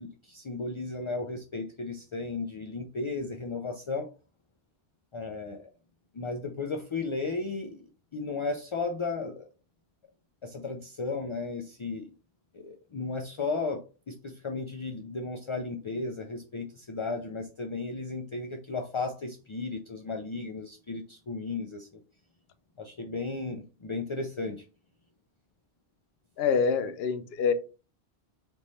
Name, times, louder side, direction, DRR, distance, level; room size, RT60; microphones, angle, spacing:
voice 1, 0.0-4.1 5.1-5.7 6.1-7.8 8.1-9.4 10.4-12.1 12.5-21.9 22.8-24.6, left 3 dB, 50° left, 0.3 m, -34 dB
voice 2, 26.4-27.5, left 6 dB, 70° left, 0.8 m, -26 dB
3.6 x 3.1 x 4.0 m
omnidirectional pair, 1.1 m